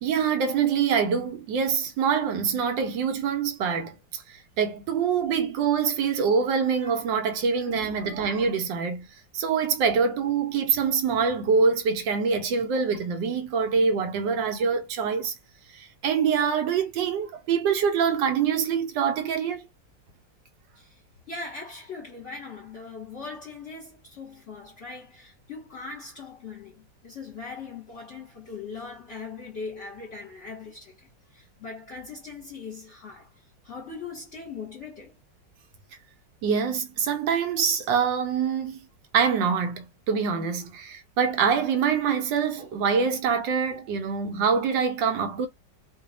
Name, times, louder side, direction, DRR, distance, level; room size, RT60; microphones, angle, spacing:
voice 1, 0.0-9.1 9.3-15.3 15.7-19.6 36.4-38.9 39.1-45.5, right 6 dB, 80° right, 1.4 m, -25 dB
voice 2, 7.6-7.9 20.7-21.0 21.3-35.1, left 4 dB, 45° left, 1.2 m, -40 dB
3.1 x 2.2 x 3.9 m
omnidirectional pair, 2.0 m